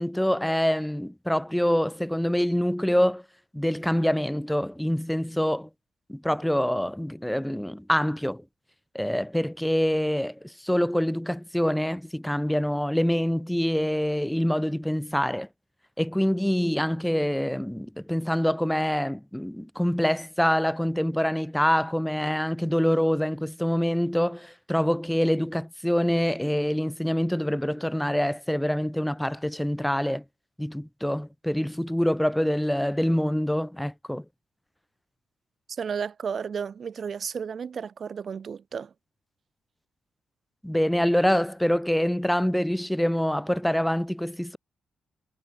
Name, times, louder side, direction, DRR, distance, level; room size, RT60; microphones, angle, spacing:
voice 1, 0.0-3.2 3.5-5.7 6.1-8.4 8.9-15.5 16.0-30.2 30.6-34.2 40.6-44.6, equal, 5° left, 0.8 m, -25 dB
voice 2, 35.7-38.9, right 6 dB, 50° right, 0.5 m, -33 dB
cardioid pair, 110°, 0 cm